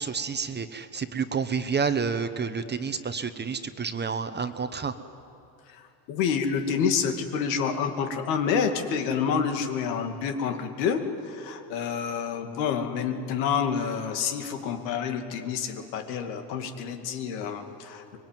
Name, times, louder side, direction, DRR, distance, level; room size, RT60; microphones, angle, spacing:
voice 1, 0.0-5.0, right 5 dB, 20° right, 10 dB, 1.1 m, -29 dB
voice 2, 6.1-18.2, left 6 dB, 85° left, 6 dB, 2.5 m, -28 dB
24.0 x 21.5 x 9.2 m, 2.8 s
supercardioid pair, 115°, 50 cm